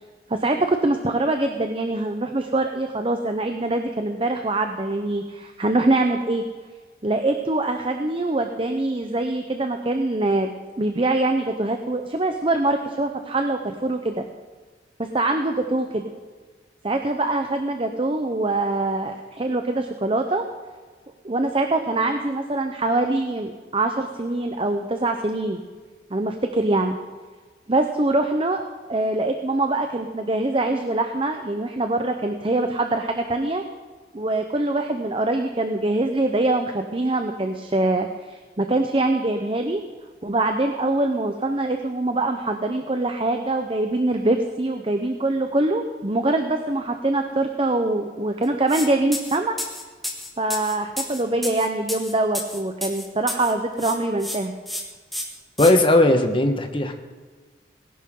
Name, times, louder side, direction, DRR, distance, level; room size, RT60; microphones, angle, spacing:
voice 1, 0.3-6.4 7.0-14.3 15.0-16.0 16.8-20.4 21.2-25.6 26.1-27.0 27.7-33.6 34.1-39.8 40.2-49.6 50.4-54.6, right 2 dB, 30° right, 5 dB, 0.8 m, -24 dB
sound 1, 48.7-48.9 49.1-53.5 53.8-54.4 54.7-54.8 55.1-55.7, left 1 dB, ahead, 1.5 m, -31 dB
voice 2, 55.6-56.9, left 1 dB, 30° left, 5 dB, 1.2 m, -17 dB
19.0 x 11.0 x 3.8 m, 1.4 s
head